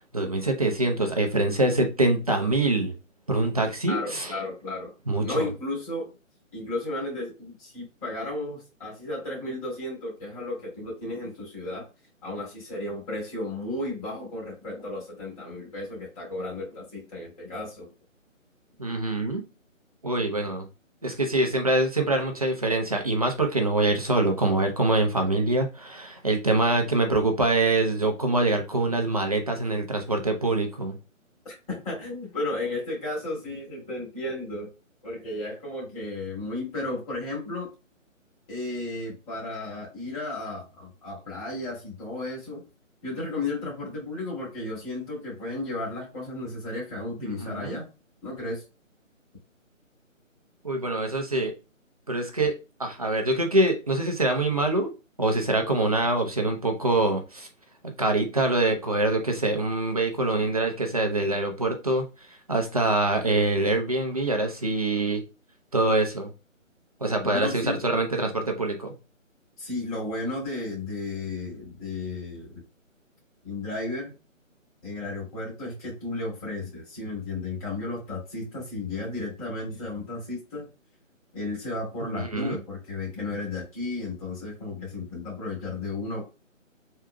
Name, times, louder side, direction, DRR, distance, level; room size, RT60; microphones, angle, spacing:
voice 1, 0.1-2.9 3.3-4.3 5.1-5.5 18.8-19.4 20.0-20.6 21.0-31.0 47.2-47.8 50.6-51.5 52.1-52.5 52.8-54.9 55.2-57.5 57.8-62.1 62.5-65.2 65.7-66.3 67.0-68.9 82.0-82.6, right 2 dB, 30° right, 3 dB, 0.6 m, -24 dB
voice 2, 3.9-4.9 5.2-6.1 6.5-11.9 12.2-17.9 31.4-34.7 35.0-37.7 38.5-42.6 43.0-47.9 48.2-48.6 67.2-67.8 69.6-72.6 73.4-74.1 74.8-80.6 81.3-86.2, left 2 dB, 25° left, -4 dB, 2.3 m, -33 dB
4.4 x 3.7 x 2.2 m, 0.29 s
figure-of-eight pair, 155°, 40 cm